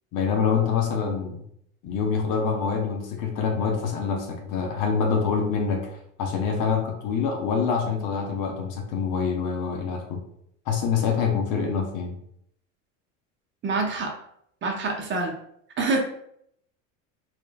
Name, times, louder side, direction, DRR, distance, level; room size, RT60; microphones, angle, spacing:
voice 1, 0.1-1.4 1.8-10.2 10.7-12.2, left 6 dB, 50° left, 2 dB, 0.7 m, -26 dB
voice 2, 13.6-14.1 14.6-15.3 15.8-16.0, right 3 dB, 30° right, 1 dB, 0.6 m, -26 dB
2.9 x 2.4 x 2.2 m, 0.71 s
supercardioid pair, 95°, 38 cm